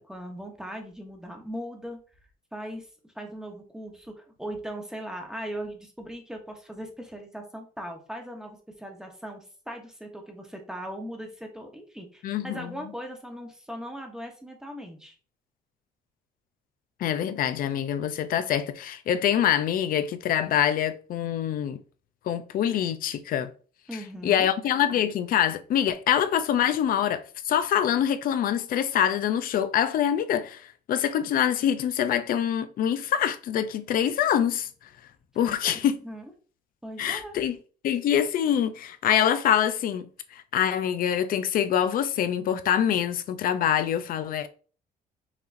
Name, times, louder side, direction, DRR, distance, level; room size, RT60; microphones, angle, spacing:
voice 1, 0.0-2.0 2.5-15.1 23.9-24.5 36.0-36.3 36.8-37.4, equal, 5° right, 1.0 m, -39 dB
voice 2, 12.2-12.7 17.0-21.8 22.3-23.5 24.2-34.7 35.4-36.0 37.0-37.6 37.8-40.1 40.3-44.5, left 9 dB, 55° left, 0.5 m, -25 dB
5.9 x 2.8 x 2.6 m
cardioid pair, 110°, 17 cm